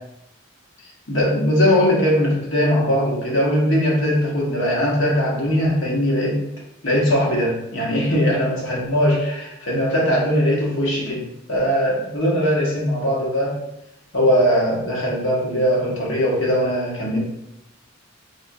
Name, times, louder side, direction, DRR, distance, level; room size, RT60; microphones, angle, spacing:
voice 1, 1.1-6.4 6.8-11.2 11.5-13.5 14.1-17.2, equal, 65° left, -4 dB, 1.0 m, -20 dB
3.4 x 2.4 x 2.6 m, 0.83 s
head